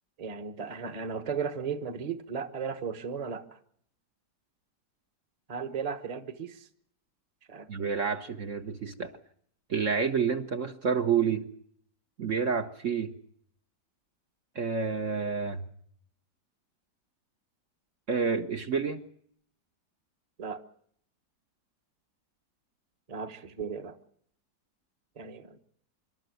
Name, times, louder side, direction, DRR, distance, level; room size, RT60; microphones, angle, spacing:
voice 1, 0.2-3.6 5.5-6.7 7.5-7.7 20.4-20.6 23.1-24.0 25.2-25.6, right 6 dB, 25° right, 9 dB, 1.2 m, -35 dB
voice 2, 7.7-9.2 9.7-11.5 12.2-13.1 14.5-15.6 18.1-19.0, right 6 dB, 50° right, 5 dB, 1.3 m, -29 dB
26.5 x 12.0 x 9.3 m, 0.67 s
omnidirectional pair, 1.8 m